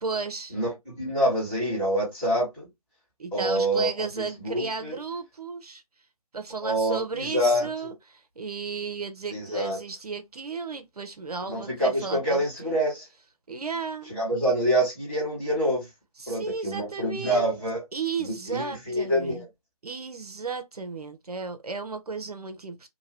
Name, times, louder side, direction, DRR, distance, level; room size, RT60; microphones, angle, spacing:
voice 1, 0.0-0.6 3.2-5.8 6.3-12.8 13.5-14.1 16.2-17.5 17.9-19.4 19.8-22.9, right 4 dB, 75° right, 0.7 m, -34 dB
voice 2, 0.5-2.7 3.3-5.0 6.6-7.7 9.3-9.8 11.5-13.1 14.1-15.9 16.3-17.8 18.5-19.5, equal, 10° left, 1.7 m, -26 dB
2.8 x 2.7 x 2.9 m
figure-of-eight pair, 160°, 20 cm